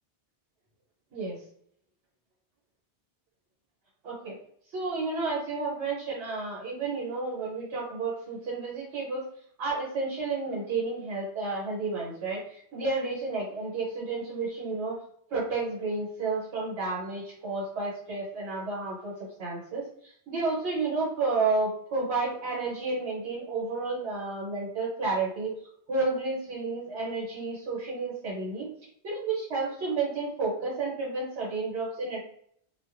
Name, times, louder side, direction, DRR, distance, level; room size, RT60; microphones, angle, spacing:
voice 1, 4.0-4.4 4.7-9.2 9.6-15.0 15.3-25.5 25.9-28.7 29.0-32.2, right 3 dB, 70° right, -4 dB, 1.1 m, -31 dB
2.4 x 2.2 x 2.4 m, 0.65 s
omnidirectional pair, 1.2 m